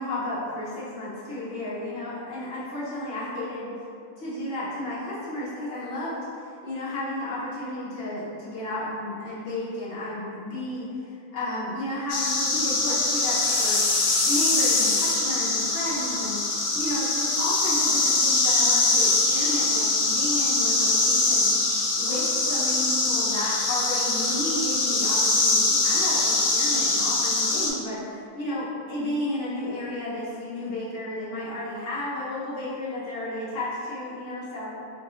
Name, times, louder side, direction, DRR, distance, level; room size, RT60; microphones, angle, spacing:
voice 1, 0.0-3.7 4.2-13.8 14.2-34.7, left 1 dB, 45° left, -10 dB, 0.9 m, -32 dB
sound 1, 12.1-27.7, left 3 dB, 70° left, 0.7 m, -23 dB
3.0 x 2.5 x 3.0 m, 2.4 s
omnidirectional pair, 1.8 m